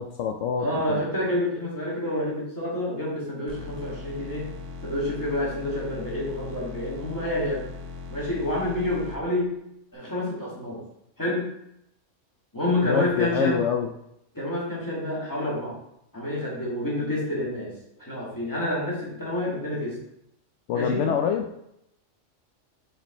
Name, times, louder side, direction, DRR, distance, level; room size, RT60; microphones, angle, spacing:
voice 1, 0.0-1.0 12.8-13.9 20.7-21.4, left 7 dB, 75° left, 5 dB, 0.9 m, -26 dB
voice 2, 0.6-4.5 4.8-7.6 8.1-9.5 9.9-10.8 11.2-11.5 12.5-13.6 14.3-15.8 16.1-17.7 18.0-20.0 20.7-21.0, left 1 dB, 15° left, -7 dB, 2.5 m, -28 dB
sound 1, 3.5-9.2, left 4 dB, 80° right, 1.2 m, -39 dB
5.2 x 4.9 x 4.4 m, 0.78 s
omnidirectional pair, 1.3 m